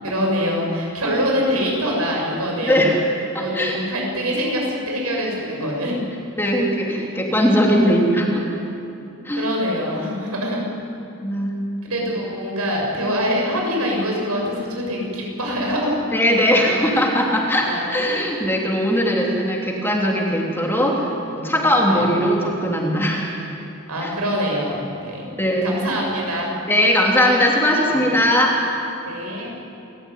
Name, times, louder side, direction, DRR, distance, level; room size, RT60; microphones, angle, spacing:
voice 1, 0.0-2.9 3.4-6.0 7.6-7.7 9.3-10.6 11.8-16.0 17.6-17.9 21.9-22.1 23.9-25.3 25.6-26.5 27.9-28.1 29.0-29.5, equal, 80° right, -1 dB, 7.0 m, -24 dB
voice 2, 2.6-2.9 3.3-3.8 6.4-8.5 9.2-9.4 11.2-11.6 16.1-23.4 24.0-24.1 25.4-25.7 26.7-28.6, equal, 10° left, -2 dB, 3.1 m, -19 dB
28.5 x 14.5 x 9.4 m, 2.7 s
head